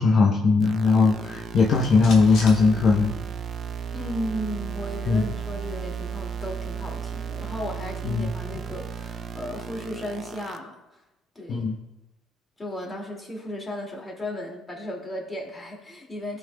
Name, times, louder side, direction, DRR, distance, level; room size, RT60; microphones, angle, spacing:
voice 1, 0.0-3.1 5.1-5.3 8.0-8.3 11.5-11.7, left 4 dB, 50° left, -1 dB, 0.8 m, -19 dB
sound 1, 0.6-10.6, right 7 dB, 45° right, 0.5 m, -35 dB
sound 2, 1.1-3.5 3.8-3.9 4.2-6.1, left 3 dB, 75° left, 1.6 m, -43 dB
voice 2, 3.9-11.0 11.4-11.6 12.6-16.4, equal, 25° left, 0 dB, 2.3 m, -35 dB
14.0 x 5.4 x 2.3 m, 0.95 s
supercardioid pair, 90°, 0 cm